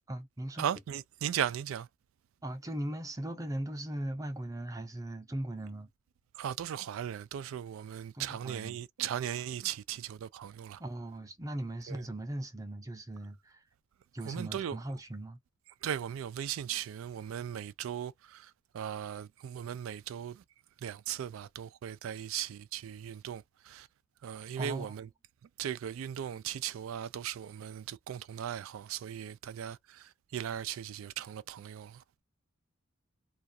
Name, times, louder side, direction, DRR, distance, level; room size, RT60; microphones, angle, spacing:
voice 1, 0.0-0.7 2.4-5.9 8.1-8.8 10.8-13.6 14.1-15.4 24.6-24.9, right 1 dB, 15° right, 0.5 m, -39 dB
voice 2, 0.6-1.9 6.3-10.8 11.9-12.0 14.2-14.8 15.8-20.4 20.8-23.9 24.2-25.1 25.6-32.0, right 9 dB, 85° right, 0.3 m, -38 dB
2.3 x 2.3 x 2.7 m
head